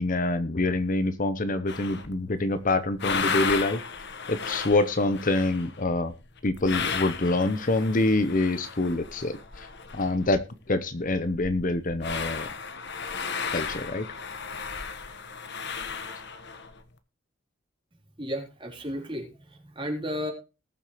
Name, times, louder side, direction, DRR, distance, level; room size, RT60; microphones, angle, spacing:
voice 1, 0.0-3.8 4.3-6.1 6.4-9.7 9.9-10.4 10.7-12.5 13.5-14.1, left 2 dB, 40° left, 12 dB, 0.8 m, -26 dB
sound 1, 1.7-2.2 2.7-10.5 10.7-10.8 11.0-16.8, left 5 dB, 60° left, 1.3 m, -34 dB
voice 2, 18.2-20.3, equal, 25° right, 1 dB, 3.7 m, -33 dB
19.5 x 7.2 x 3.1 m, 0.29 s
head